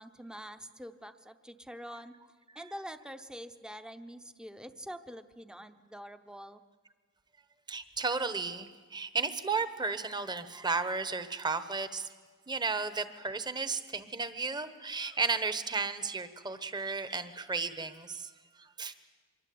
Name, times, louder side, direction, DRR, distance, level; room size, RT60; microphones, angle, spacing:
voice 1, 0.0-2.1 2.5-6.6, equal, 5° right, 9 dB, 0.8 m, -45 dB
voice 2, 7.7-12.1 12.5-18.3 18.6-18.9, right 4 dB, 20° right, 11 dB, 1.2 m, -34 dB
25.5 x 23.0 x 8.7 m, 1.5 s
head